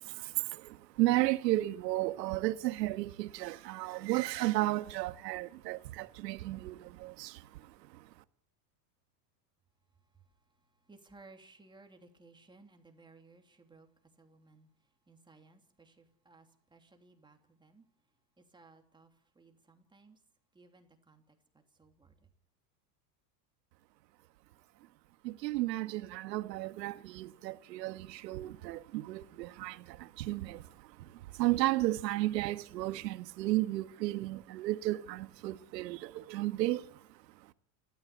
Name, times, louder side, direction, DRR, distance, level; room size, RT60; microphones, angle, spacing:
voice 1, 0.0-8.1 25.2-37.0, right 17 dB, 85° right, 1.6 m, -34 dB
voice 2, 10.9-13.9 14.2-14.7 15.1-17.8 18.4-20.2 20.5-22.3, right 3 dB, 10° right, 3.0 m, -60 dB
29.0 x 13.5 x 8.4 m
supercardioid pair, 150°, 48 cm